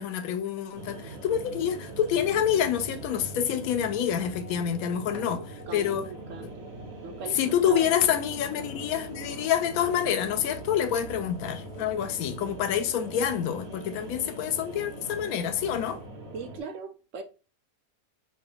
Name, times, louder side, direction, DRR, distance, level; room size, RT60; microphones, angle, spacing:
voice 1, 0.0-5.4 5.7-6.1 7.3-16.0, left 9 dB, 80° left, 1.0 m, -27 dB
sound 1, 0.7-16.6, right 2 dB, 50° right, 1.1 m, -41 dB
voice 2, 5.1-6.5 7.0-7.4 7.6-8.3 15.7-15.8 16.3-17.2, right 5 dB, 65° right, 0.9 m, -39 dB
4.9 x 2.2 x 3.8 m
omnidirectional pair, 1.5 m